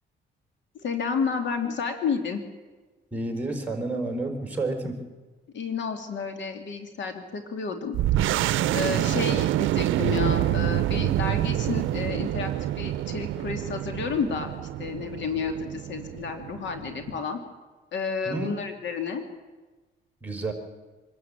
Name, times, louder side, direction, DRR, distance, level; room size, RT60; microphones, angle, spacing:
voice 1, 0.7-2.4 5.5-8.0 8.7-14.5 14.8-17.4 17.9-19.2, left 5 dB, 65° left, 6 dB, 2.7 m, -31 dB
voice 2, 3.1-5.0 18.2-18.5 20.2-20.5, right 2 dB, 10° right, 3 dB, 4.8 m, -30 dB
sound 1, 7.9-17.2, right 13 dB, 80° right, 0.6 m, -27 dB
25.0 x 12.5 x 9.0 m, 1.3 s
cardioid pair, 90°, 20 cm